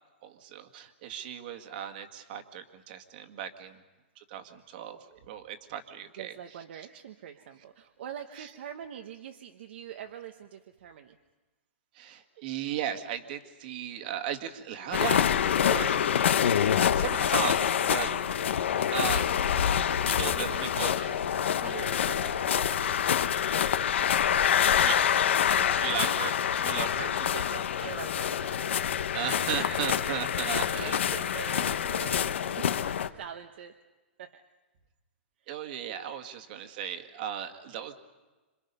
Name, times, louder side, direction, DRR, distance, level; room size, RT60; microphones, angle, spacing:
voice 1, 0.2-3.8 4.2-6.4 6.7-6.9 8.3-8.5 11.9-16.0 16.2-16.4 16.9-18.1 18.9-19.5 20.0-21.0 24.7-25.2 25.8-27.1 29.1-31.2 35.5-37.9, right 9 dB, 50° right, 7 dB, 2.0 m, -36 dB
voice 2, 6.2-11.2 20.2-21.2 21.6-23.1 25.2-26.3 27.2-28.7 30.8-33.8 34.2-34.4, right 9 dB, 65° right, 5 dB, 1.1 m, -44 dB
sound 1, 14.9-33.1, left 9 dB, 80° left, 1.1 m, -26 dB
27.0 x 25.5 x 5.5 m, 1.2 s
hypercardioid pair, 150°, 6 cm